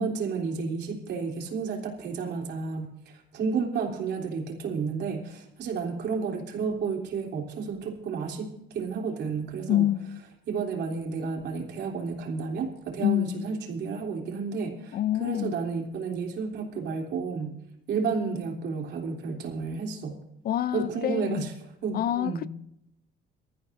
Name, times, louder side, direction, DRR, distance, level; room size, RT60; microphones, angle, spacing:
voice 1, 0.0-2.9 3.3-8.5 8.7-9.9 10.5-17.6 17.9-20.2 20.7-21.5 21.8-22.5, right 5 dB, 70° right, 3.3 m, -31 dB
voice 2, 9.7-10.2 13.0-13.5 14.9-15.6 20.4-21.5 21.9-22.5, left 12 dB, 55° left, 0.5 m, -27 dB
23.5 x 14.0 x 2.7 m
cardioid pair, 130°, 19 cm